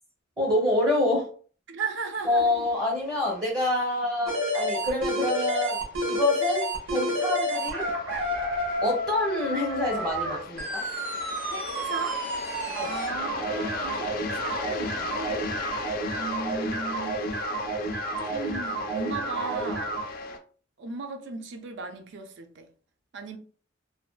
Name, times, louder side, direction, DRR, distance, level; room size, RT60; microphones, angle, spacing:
voice 1, 0.4-1.3 2.2-7.9 8.8-10.8 12.8-12.9, left 1 dB, 25° right, 0.7 m, -27 dB
voice 2, 1.7-2.5 11.5-12.3 12.7-15.5 16.1-17.2 18.2-20.0 20.8-22.7 23.1-23.4, right 4 dB, 65° right, 0.4 m, -36 dB
sound 1, 2.1-20.4, left 5 dB, 50° left, 0.3 m, -39 dB
sound 2, 4.3-20.0, equal, 85° right, 0.9 m, -30 dB
2.7 x 2.1 x 2.3 m
head